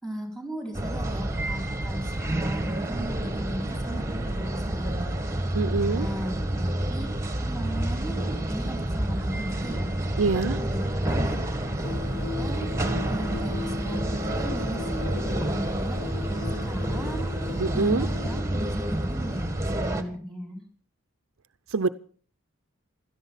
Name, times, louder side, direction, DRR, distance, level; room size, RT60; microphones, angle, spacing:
voice 1, 0.0-5.2 5.8-7.1 7.4-12.7 13.1-19.5 19.7-20.6, equal, 5° left, 3 dB, 5.1 m, -37 dB
sound 1, 0.7-20.0, right 1 dB, 15° right, 1.6 m, -29 dB
voice 2, 5.5-6.1 10.2-10.6 17.6-18.1 21.7-21.9, right 4 dB, 65° right, 11 dB, 0.6 m, -25 dB
sound 2, 11.8-18.4, left 3 dB, 75° left, 5.9 m, -37 dB
16.5 x 13.0 x 5.8 m, 0.43 s
head